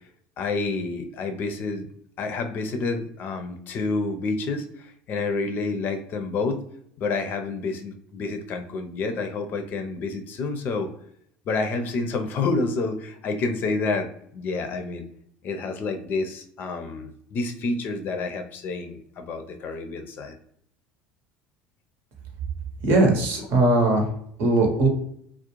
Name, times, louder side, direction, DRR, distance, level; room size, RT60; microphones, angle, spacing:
voice 1, 0.4-1.9 2.2-6.6 7.0-10.9 11.5-15.0 15.4-20.3 23.4-23.5, left 3 dB, 50° left, 6 dB, 0.5 m, -29 dB
voice 2, 22.8-24.0 24.4-24.9, right 2 dB, 60° right, 2 dB, 0.8 m, -19 dB
2.4 x 2.0 x 2.9 m, 0.68 s
hypercardioid pair, 85°, 4 cm